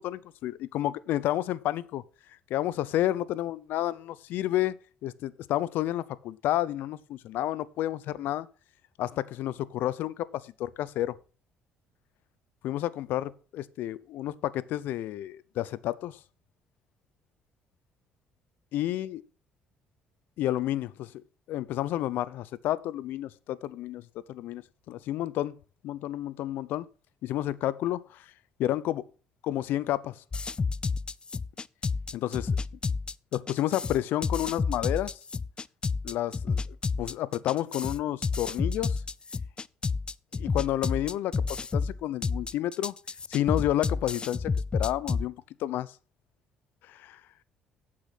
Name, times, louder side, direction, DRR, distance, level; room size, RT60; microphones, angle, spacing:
voice 1, 0.0-2.0 2.5-4.7 5.0-8.5 9.0-11.1 12.6-16.2 18.7-19.2 20.4-21.2 21.5-25.5 25.8-26.9 27.2-28.2 28.6-29.0 29.4-30.2 32.1-32.6 33.3-35.2 36.0-36.6 37.0-39.0 40.4-42.9 43.3-45.9 46.9-47.2, left 13 dB, 75° left, 0.7 m, -30 dB
sound 1, 30.3-45.3, left 4 dB, 30° left, 0.4 m, -30 dB
8.6 x 8.3 x 5.9 m
supercardioid pair, 75°, 3 cm